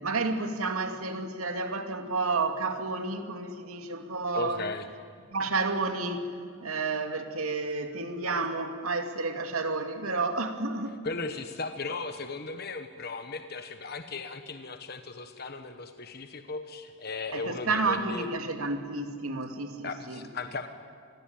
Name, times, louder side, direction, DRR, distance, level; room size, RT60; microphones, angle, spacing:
voice 1, 0.0-4.6 5.3-11.0 17.3-20.2, right 3 dB, 85° right, 6 dB, 2.5 m, -31 dB
voice 2, 4.3-4.9 11.0-18.3 19.8-20.7, left 3 dB, 45° left, 7 dB, 1.2 m, -36 dB
27.0 x 21.0 x 8.9 m, 2.2 s
head